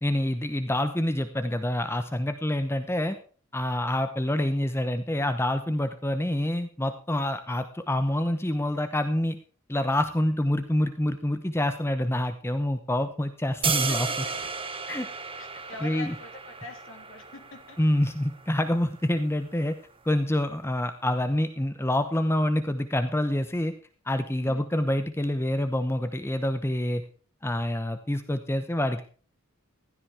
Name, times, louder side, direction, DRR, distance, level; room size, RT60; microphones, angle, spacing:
voice 1, 0.0-3.2 3.5-9.4 9.7-14.1 14.9-15.1 15.8-16.1 17.8-19.7 20.0-23.7 24.1-27.0 27.4-29.0, left 1 dB, 10° left, 9 dB, 0.8 m, -27 dB
sound 1, 13.6-19.7, right 5 dB, 25° right, 1.4 m, -34 dB
voice 2, 13.8-14.5 15.4-17.8 24.4-24.6, left 2 dB, 60° left, 4 dB, 2.9 m, -44 dB
15.5 x 13.0 x 3.5 m, 0.40 s
head